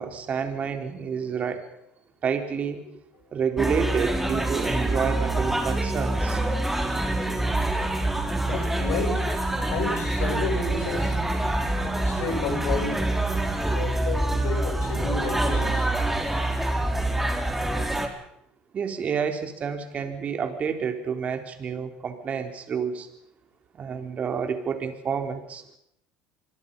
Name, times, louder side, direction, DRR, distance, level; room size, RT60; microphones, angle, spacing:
voice 1, 0.0-1.7 2.2-2.8 3.3-6.4 18.7-23.1 23.8-25.8, right 6 dB, 40° right, 6 dB, 3.8 m, -29 dB
sound 1, 3.6-18.1, right 1 dB, 5° right, 4.0 m, -26 dB
voice 2, 8.4-11.2 12.0-13.1 13.7-15.9, left 5 dB, 70° left, 3 dB, 7.5 m, -31 dB
26.5 x 22.5 x 5.5 m, 0.77 s
supercardioid pair, 90°, 4 cm